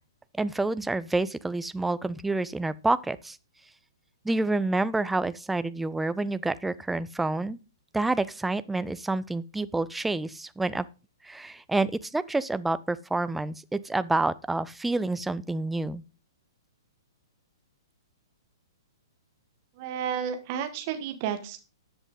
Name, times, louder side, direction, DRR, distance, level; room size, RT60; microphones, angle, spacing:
voice 1, 0.4-3.4 4.2-7.6 7.9-10.9 11.2-16.0, right 2 dB, 5° right, 15 dB, 0.5 m, -28 dB
voice 2, 19.8-21.6, right 8 dB, 40° right, 8 dB, 1.9 m, -32 dB
13.5 x 7.9 x 3.9 m, 0.35 s
figure-of-eight pair, 115°, 2 cm